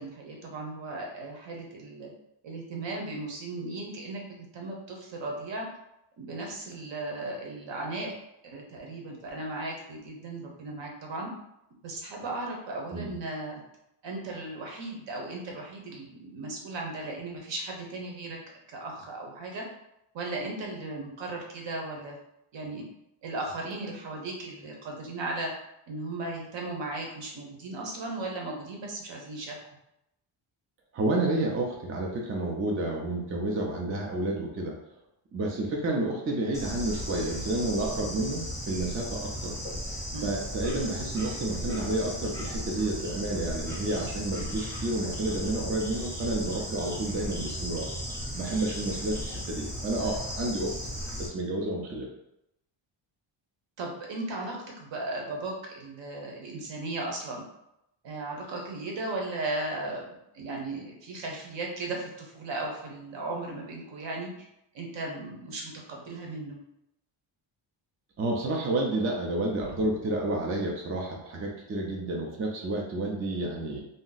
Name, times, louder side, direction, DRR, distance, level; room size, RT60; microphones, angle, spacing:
voice 1, 0.0-2.1 2.4-5.7 6.2-8.1 8.4-11.3 11.8-13.6 14.0-18.4 18.7-19.6 20.1-22.2 22.5-22.9 23.2-25.5 25.9-29.6 40.1-40.4 53.8-57.4 58.0-60.0 60.3-64.5 64.7-66.6, right 2 dB, 60° right, 0 dB, 0.8 m, -36 dB
voice 2, 30.9-34.8 35.3-39.5 40.2-48.0 48.3-50.7 51.2-52.1 68.2-73.8, right 2 dB, 30° right, -1 dB, 0.3 m, -30 dB
Bird / Insect, 36.5-51.3, equal, 5° left, 0.7 m, -36 dB
2.6 x 2.0 x 3.8 m, 0.82 s
cardioid pair, 155°, 50 cm